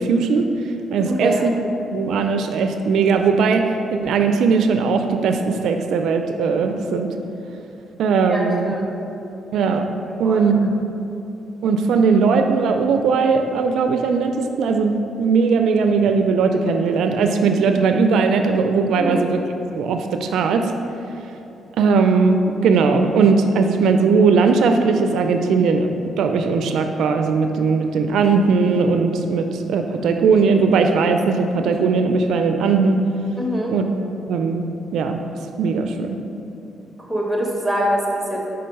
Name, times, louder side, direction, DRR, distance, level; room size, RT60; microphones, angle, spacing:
voice 1, 0.0-1.5 1.9-7.1 8.0-8.7 9.5-9.9 10.2-10.7 11.6-19.4 19.7-20.7 21.8-33.0 33.7-33.9 34.3-34.7 34.9-35.2 35.6-36.2, right 4 dB, 75° right, 6 dB, 0.3 m, -19 dB
voice 2, 1.0-1.5 8.3-9.0 10.1-10.4 18.9-19.2 33.4-33.7 37.0-38.4, equal, ahead, -1 dB, 1.2 m, -24 dB
5.5 x 3.9 x 5.2 m, 2.9 s
cardioid pair, 90°, 0 cm